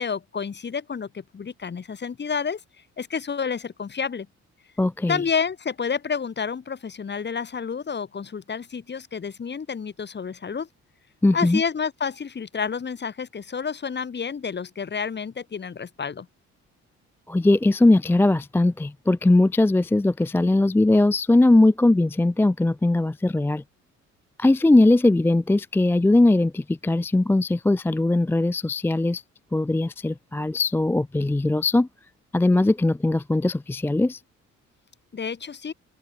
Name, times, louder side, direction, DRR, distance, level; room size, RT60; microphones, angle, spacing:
voice 1, 0.0-2.6 3.0-4.3 5.1-10.7 11.3-16.3 35.1-35.7, left 6 dB, 35° left, 1.9 m, -29 dB
voice 2, 4.8-5.2 11.2-11.6 17.3-23.6 24.4-29.2 29.5-31.9 32.3-34.2, left 2 dB, 5° left, 0.4 m, -20 dB
cardioid pair, 90°, 30 cm